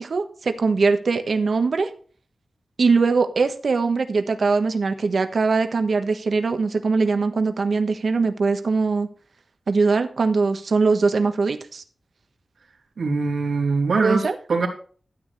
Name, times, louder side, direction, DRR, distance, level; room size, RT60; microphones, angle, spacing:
voice 1, 0.0-1.9 2.8-9.1 9.7-11.8 14.0-14.3, right 4 dB, 60° right, 7 dB, 1.4 m, -21 dB
voice 2, 13.0-14.7, right 4 dB, 85° right, 0 dB, 3.6 m, -22 dB
13.5 x 9.2 x 3.3 m, 0.41 s
wide cardioid pair, 125°, 0 cm